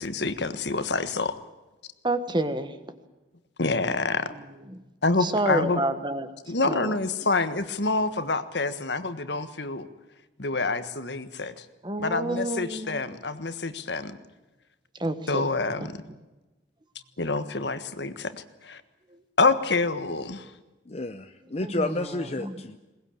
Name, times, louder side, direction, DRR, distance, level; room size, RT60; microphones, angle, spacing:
voice 1, 0.0-1.4 3.6-4.3 5.0-5.8 6.5-9.9 10.4-11.6 12.0-14.2 15.3-16.0 17.2-18.8 19.4-20.5, left 3 dB, 65° left, 11 dB, 1.5 m, -27 dB
voice 2, 2.0-3.0 4.7-4.8 5.2-6.3 6.7-6.9 11.8-13.0 15.0-15.4 15.8-15.9 21.6-21.9 22.4-22.6, right 1 dB, 25° right, 11 dB, 1.4 m, -29 dB
voice 3, 20.9-22.8, left 2 dB, 35° left, 8 dB, 0.7 m, -31 dB
21.5 x 19.5 x 8.8 m, 1.1 s
head